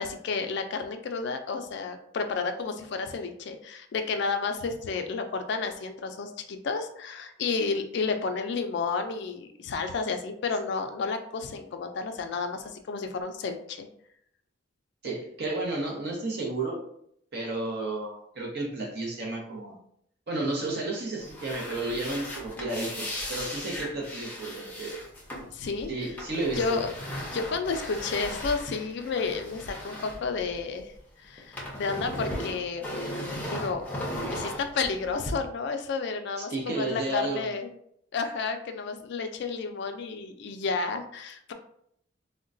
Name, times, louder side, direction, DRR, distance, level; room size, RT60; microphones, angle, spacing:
voice 1, 0.0-13.9 25.5-26.1 26.6-26.9 27.3-30.9 31.2-32.8 33.5-37.7 38.1-41.5, left 4 dB, 60° left, 7 dB, 0.3 m, -31 dB
voice 2, 15.0-16.8 17.3-19.7 20.3-25.0 25.9-26.8 36.4-37.5, right 2 dB, 55° right, -2 dB, 0.8 m, -32 dB
sound 1, 21.2-31.0 31.2-35.3, left 1 dB, 10° left, 0.6 m, -37 dB
3.7 x 2.1 x 2.5 m, 0.70 s
head